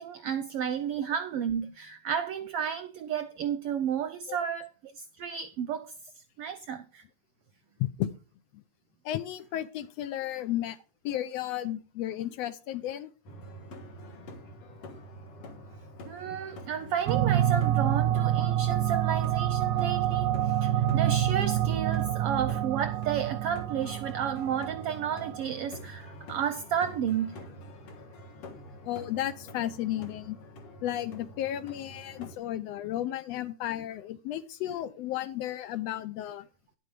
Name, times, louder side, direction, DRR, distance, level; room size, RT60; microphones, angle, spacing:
voice 1, 0.0-5.9 6.4-7.0 16.0-27.5, right 8 dB, 70° right, 1.4 m, -32 dB
voice 2, 7.8-8.1 8.5-8.6 9.0-10.8 11.0-13.1 28.8-30.4 30.8-36.5, left 12 dB, 75° left, 1.6 m, -33 dB
sound 1, 13.2-32.3, equal, 55° left, 2.3 m, -47 dB
sound 2, 17.1-25.4, right 12 dB, 85° right, 2.1 m, -27 dB
10.5 x 7.6 x 5.1 m
omnidirectional pair, 3.3 m